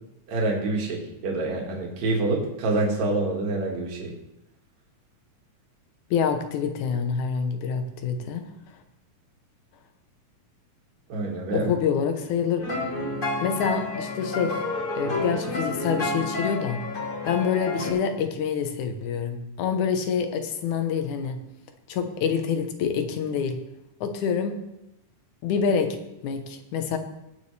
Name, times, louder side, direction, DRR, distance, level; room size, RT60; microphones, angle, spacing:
voice 1, 0.3-4.1 11.1-11.7, right 2 dB, 65° right, -1 dB, 3.1 m, -26 dB
voice 2, 6.1-8.5 11.5-12.6 13.4-14.6 15.0-16.8 17.3-21.4 21.9-23.6 24.0-24.7 25.4-26.0 26.2-27.0, left 6 dB, 75° left, 7 dB, 2.4 m, -26 dB
sound 1, 12.6-17.9, left 2 dB, 30° left, 1.0 m, -30 dB
18.5 x 7.0 x 3.3 m, 0.89 s
omnidirectional pair, 3.6 m